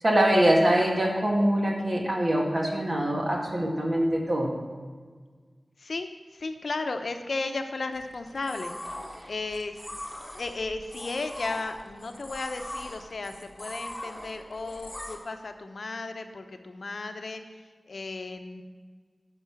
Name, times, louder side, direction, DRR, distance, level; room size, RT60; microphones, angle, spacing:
voice 1, 0.0-4.6 9.2-9.3, right 1 dB, 50° right, -1 dB, 1.9 m, -24 dB
voice 2, 5.8-8.7 9.2-9.9 10.4-18.6, left 3 dB, 75° left, 6 dB, 0.8 m, -35 dB
sound 1, 7.9-15.2, left 1 dB, 10° left, 1.5 m, -41 dB
10.5 x 5.6 x 7.0 m, 1.5 s
wide cardioid pair, 80°, 0 cm